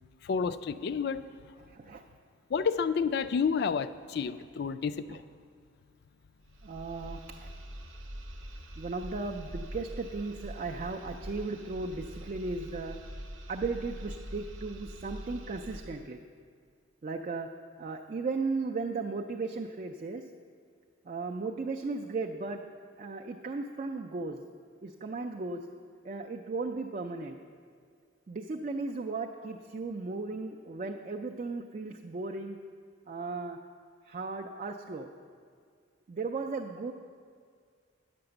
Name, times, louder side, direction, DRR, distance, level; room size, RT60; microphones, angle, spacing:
voice 1, 0.2-1.2 2.5-5.2, left 6 dB, 55° left, 13 dB, 0.3 m, -30 dB
voice 2, 1.7-2.0 5.1-5.2 6.6-7.5 8.8-13.0 13.5-16.2 17.0-17.5 17.8-20.2 21.1-22.6 23.0-24.4 24.8-25.6 26.0-27.4 28.3-32.6 33.1-33.6 34.1-35.1 36.1-36.9, right 3 dB, 40° right, 2 dB, 0.4 m, -36 dB
sound 1, 6.4-16.1, right 1 dB, 90° right, 0.9 m, -44 dB
8.6 x 6.0 x 7.7 m, 2.1 s
head